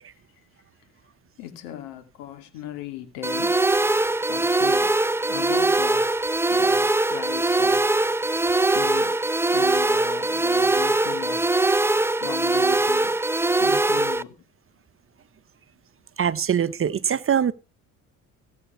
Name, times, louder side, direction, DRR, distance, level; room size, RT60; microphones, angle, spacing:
voice 1, 1.4-3.6 4.3-5.0 5.3-8.0 8.7-9.2 9.5-11.6 12.2-13.1 13.6-14.4, left 11 dB, 85° left, 2.7 m, -37 dB
sound 1, 3.2-14.2, right 2 dB, 5° right, 0.6 m, -22 dB
voice 2, 16.2-17.5, right 8 dB, 35° right, 1.0 m, -22 dB
17.0 x 8.4 x 5.8 m
supercardioid pair, 75°, 37 cm